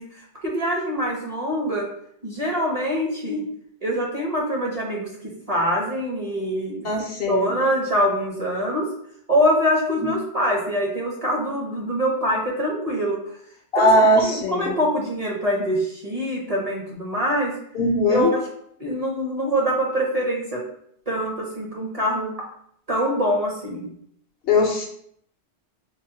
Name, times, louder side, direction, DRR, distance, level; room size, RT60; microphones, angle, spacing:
voice 1, 0.0-1.9 2.2-3.4 3.8-6.9 7.3-8.9 9.3-13.2 13.8-17.5 18.1-18.4 18.8-20.6 21.1-22.3 22.9-23.9, equal, 40° right, -2 dB, 0.6 m, -24 dB
voice 2, 6.8-7.6 10.0-10.1 13.7-14.7 17.7-18.3 24.5-24.9, left 1 dB, 65° left, 1 dB, 0.7 m, -19 dB
5.5 x 2.1 x 2.7 m, 0.68 s
omnidirectional pair, 1.2 m